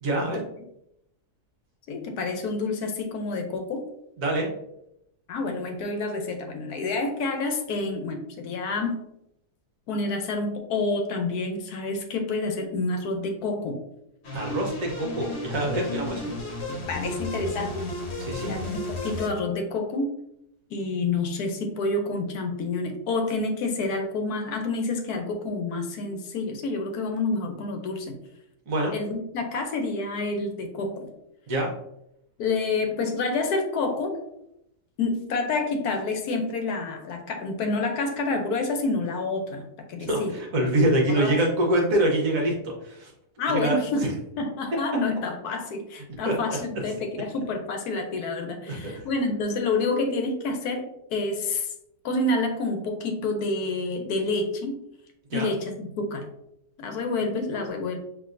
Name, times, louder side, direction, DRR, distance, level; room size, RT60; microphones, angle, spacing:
voice 1, 0.0-0.4 4.2-4.5 14.3-16.3 18.2-18.6 28.7-28.9 31.5-31.7 40.0-43.1 43.5-43.8 46.1-46.3 48.7-49.0 55.3-55.5, right 1 dB, 60° right, 1 dB, 1.2 m, -25 dB
voice 2, 1.9-3.8 5.3-9.0 9.9-13.8 16.7-17.8 18.5-20.1 20.7-28.2 28.9-31.1 32.4-34.2 35.0-40.3 41.1-41.3 43.4-44.1 44.4-51.7 52.0-54.8 55.3-56.3 56.8-58.0, left 3 dB, 70° left, 5 dB, 1.1 m, -28 dB
sound 1, 14.2-19.3, left 1 dB, 50° left, 1.0 m, -33 dB
5.9 x 2.8 x 2.5 m, 0.80 s
omnidirectional pair, 1.8 m